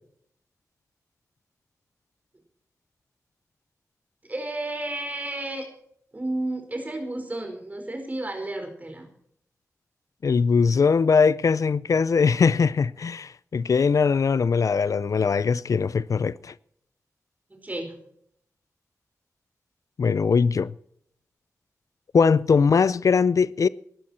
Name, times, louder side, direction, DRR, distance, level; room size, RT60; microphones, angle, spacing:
voice 1, 4.3-5.7 6.1-9.1 17.5-17.9, right 1 dB, 30° right, 4.6 m, -32 dB
voice 2, 10.2-16.5 20.0-20.7 22.1-23.7, left 5 dB, 75° left, 0.5 m, -21 dB
20.0 x 12.0 x 4.4 m
wide cardioid pair, 115°, 6 cm